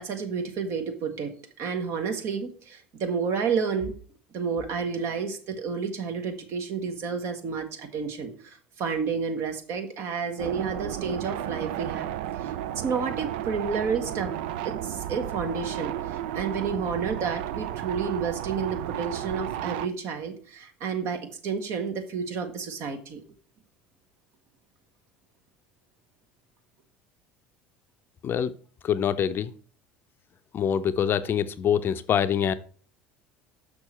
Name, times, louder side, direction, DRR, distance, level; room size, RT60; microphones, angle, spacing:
voice 1, 0.0-3.9 4.3-14.3 14.6-23.2, right 5 dB, 55° right, 7 dB, 1.4 m, -31 dB
sound 1, 10.4-19.9, right 11 dB, 70° right, 0.4 m, -33 dB
voice 2, 28.2-28.5 28.8-29.5 30.5-32.5, left 8 dB, 40° left, 13 dB, 0.5 m, -25 dB
6.3 x 6.1 x 4.4 m, 0.42 s
hypercardioid pair, 70°, 6 cm